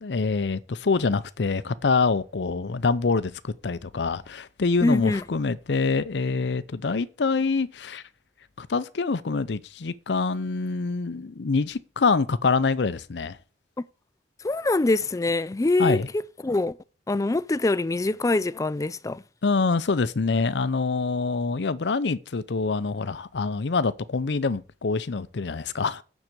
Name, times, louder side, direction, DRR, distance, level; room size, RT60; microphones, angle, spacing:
voice 1, 0.0-8.0 8.6-13.4 15.8-16.1 19.4-26.0, left 4 dB, 70° left, 0.6 m, -25 dB
voice 2, 4.8-5.2 13.8-13.9 14.4-16.0 16.4-16.7 17.1-19.2, left 2 dB, 20° left, 0.4 m, -24 dB
7.3 x 6.4 x 7.8 m
head